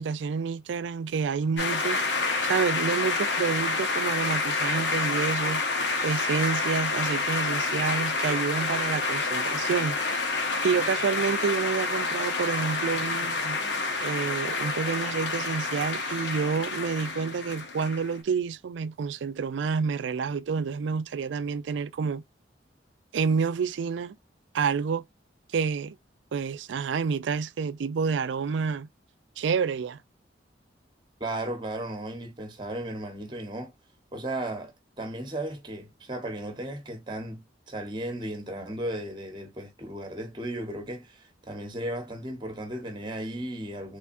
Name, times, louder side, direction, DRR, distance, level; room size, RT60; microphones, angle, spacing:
voice 1, 0.0-2.0 2.4-5.6 6.0-10.0 10.6-13.6 14.0-22.2 23.1-24.2 24.5-25.0 25.5-26.0 26.3-28.9 29.4-30.0, right 5 dB, 80° right, 0.4 m, -28 dB
sound 1, 1.6-18.2, left 3 dB, 75° left, 1.1 m, -28 dB
voice 2, 31.2-33.7 34.1-44.0, right 1 dB, 25° right, 0.9 m, -35 dB
3.4 x 3.3 x 2.5 m
head